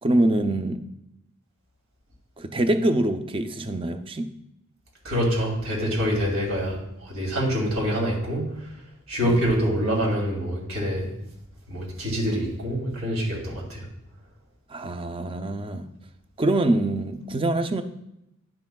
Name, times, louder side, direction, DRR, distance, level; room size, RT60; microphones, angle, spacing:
voice 1, 0.0-0.8 2.4-4.3 9.2-9.4 14.7-15.9 16.4-17.8, right 1 dB, 25° right, 8 dB, 0.4 m, -24 dB
voice 2, 5.0-8.5 9.1-11.1 11.7-13.8, equal, 75° right, -2 dB, 2.5 m, -25 dB
10.5 x 5.8 x 2.3 m, 0.86 s
head